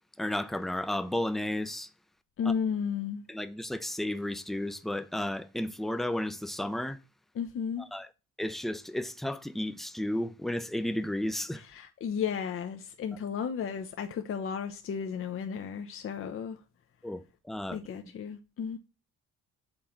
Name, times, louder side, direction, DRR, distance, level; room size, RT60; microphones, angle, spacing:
voice 1, 0.2-1.9 2.5-2.6 3.3-7.0 7.9-8.1 8.4-11.6 17.0-17.8, left 1 dB, ahead, 0.4 m, -33 dB
voice 2, 2.4-3.2 7.3-7.9 11.6-16.6 17.7-18.8, left 7 dB, 45° left, 0.6 m, -34 dB
6.1 x 3.7 x 4.3 m
cardioid pair, 90°, 30 cm